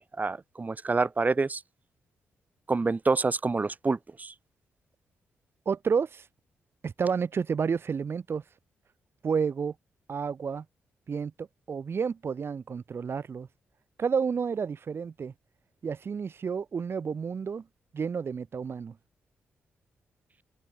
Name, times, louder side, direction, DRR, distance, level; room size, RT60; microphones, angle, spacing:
voice 1, 0.0-1.6 2.7-4.3, right 3 dB, 35° right, 3.3 m, -27 dB
voice 2, 5.7-6.3 6.8-8.4 9.2-9.7 10.1-10.6 11.1-13.5 14.0-15.3 15.8-17.6 17.9-19.0, right 6 dB, 55° right, 5.7 m, -30 dB
supercardioid pair, 55°, 5 cm